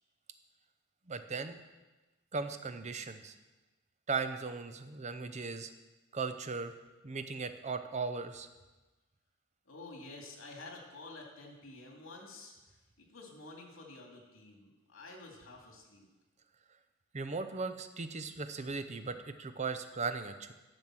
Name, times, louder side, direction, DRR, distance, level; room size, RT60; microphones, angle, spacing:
voice 1, 1.1-1.6 2.3-3.3 4.1-5.7 6.1-6.7 7.0-8.5 17.1-20.5, right 4 dB, 35° right, 9 dB, 0.7 m, -37 dB
voice 2, 9.7-16.1, left 2 dB, 80° left, 0 dB, 2.5 m, -50 dB
10.5 x 7.1 x 6.1 m, 1.1 s
head